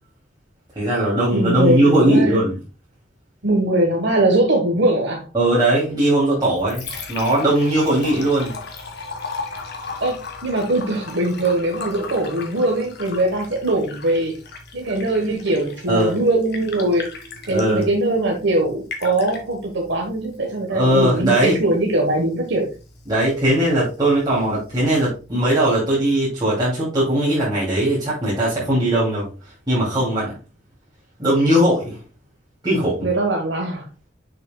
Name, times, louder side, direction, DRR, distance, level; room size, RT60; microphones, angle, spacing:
voice 1, 0.8-2.6 5.3-8.6 15.9-16.2 17.5-17.9 20.7-21.6 23.1-29.3 29.7-30.4 31.2-32.0 32.6-33.1, right 1 dB, 20° right, 2.7 m, -19 dB
voice 2, 1.3-2.4 3.4-5.3 10.0-14.3 14.7-17.1 17.5-22.7 33.0-33.9, right 1 dB, 65° right, 1.3 m, -21 dB
Liquid, 6.4-25.4, left 4 dB, 60° left, 1.6 m, -37 dB
6.7 x 6.5 x 2.3 m
head